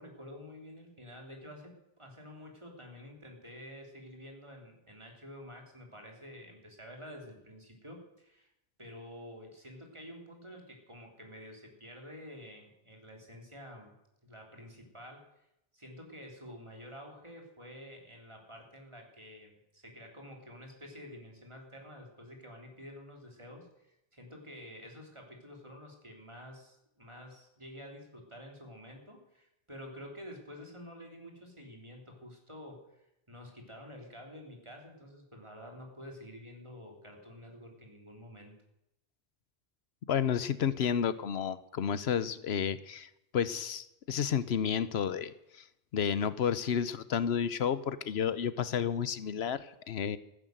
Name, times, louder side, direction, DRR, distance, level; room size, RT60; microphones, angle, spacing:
voice 1, 0.0-8.5 8.8-13.9 14.2-15.3 15.7-38.5, equal, 30° right, 1 dB, 3.6 m, -49 dB
voice 2, 40.1-45.6 45.9-50.2, left 8 dB, 80° left, 15 dB, 1.0 m, -31 dB
15.0 x 10.0 x 7.9 m, 0.84 s
omnidirectional pair, 1.1 m